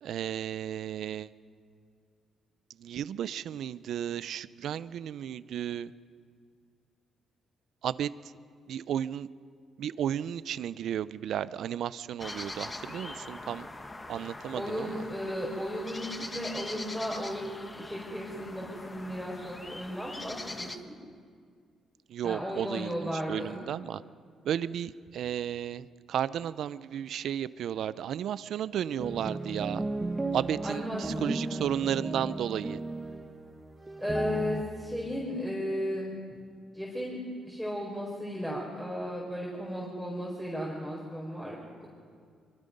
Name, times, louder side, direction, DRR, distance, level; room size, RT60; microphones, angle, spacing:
voice 1, 0.0-1.3 2.8-5.9 7.8-8.1 8.7-9.3 9.8-13.7 14.1-14.9 22.1-24.0 24.4-29.8 30.3-32.8, right 10 dB, 70° right, 17 dB, 0.6 m, -33 dB
sound 1, 12.2-20.8, left 2 dB, 20° left, 1.4 m, -42 dB
voice 2, 14.5-17.5 17.8-20.9 22.2-23.6 30.6-31.0 31.3-31.7 34.0-36.1 36.7-37.2 37.5-41.6, equal, 5° left, -4 dB, 4.7 m, -35 dB
sound 2, 29.0-34.6, right 2 dB, 15° right, 1.5 m, -35 dB
25.0 x 23.0 x 5.4 m, 2.1 s
cardioid pair, 90°, 0 cm